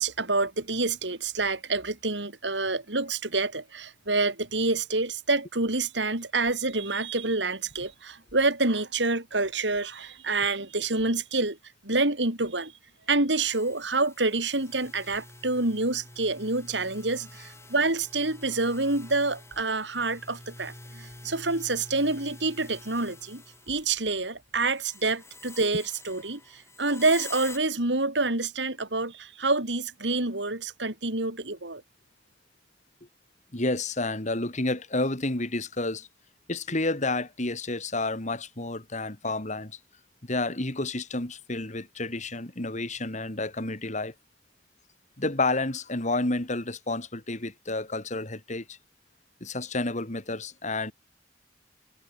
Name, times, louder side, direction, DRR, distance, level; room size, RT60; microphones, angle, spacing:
voice 1, 0.0-11.6 11.8-12.7 13.1-31.8, right 3 dB, 80° right, 5.6 m, -27 dB
sound 1, 13.5-24.2 24.5-27.6, left 2 dB, 15° left, 7.6 m, -47 dB
voice 2, 33.5-36.1 36.5-39.8 40.2-44.1 45.2-48.8 49.4-50.9, left 2 dB, 45° left, 3.1 m, -30 dB
head